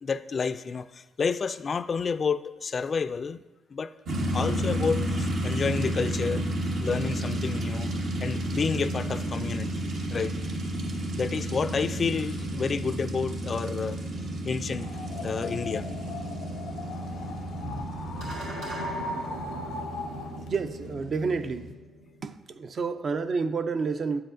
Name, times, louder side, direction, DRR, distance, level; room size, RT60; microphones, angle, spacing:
voice 1, 0.0-3.4 3.7-3.9 4.3-6.4 6.8-7.9 8.2-9.8 10.1-10.3 11.2-14.0 14.4-14.9 15.2-15.9, left 5 dB, 40° left, 14 dB, 0.3 m, -30 dB
sound 1, 4.1-21.7, right 1 dB, 70° right, 1.0 m, -32 dB
sound 2, 14.7-20.5, left 3 dB, 85° left, 0.5 m, -38 dB
sound 3, 18.2-22.8, right 1 dB, 85° right, 1.4 m, -42 dB
voice 2, 20.5-21.7 22.2-24.2, right 4 dB, 45° right, 10 dB, 0.4 m, -29 dB
9.4 x 7.6 x 2.6 m, 1.1 s
cardioid pair, 90°, 0 cm